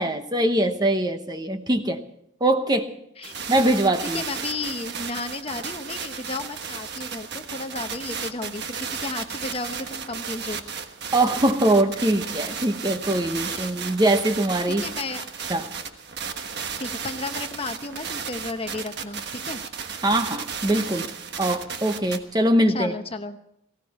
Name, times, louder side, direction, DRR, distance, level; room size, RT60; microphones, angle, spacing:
voice 1, 0.0-2.0 2.4-2.9 3.5-4.2 11.1-14.8 15.5-15.7 20.0-21.1 21.4-22.9, right 1 dB, 20° right, 7 dB, 0.9 m, -22 dB
voice 2, 3.2-3.5 4.1-10.7 13.4-13.7 14.7-15.3 16.8-19.6 22.7-23.4, left 3 dB, 25° left, 8 dB, 0.9 m, -33 dB
sound 1, 3.2-22.2, right 6 dB, 50° right, 1.3 m, -34 dB
19.0 x 16.5 x 4.2 m, 0.76 s
head